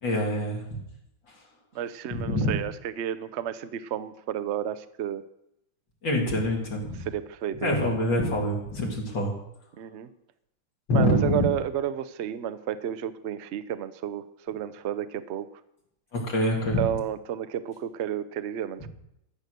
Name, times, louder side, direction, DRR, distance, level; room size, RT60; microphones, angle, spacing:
voice 1, 0.0-0.6 2.1-2.5 6.0-7.1 7.6-9.3 10.9-11.4 16.1-16.8, left 1 dB, 70° left, -2 dB, 3.4 m, -25 dB
voice 2, 1.7-5.2 7.1-7.8 9.8-10.1 10.9-15.5 16.8-18.9, right 10 dB, 80° right, 13 dB, 0.6 m, -31 dB
13.5 x 7.8 x 6.6 m, 0.81 s
omnidirectional pair, 2.1 m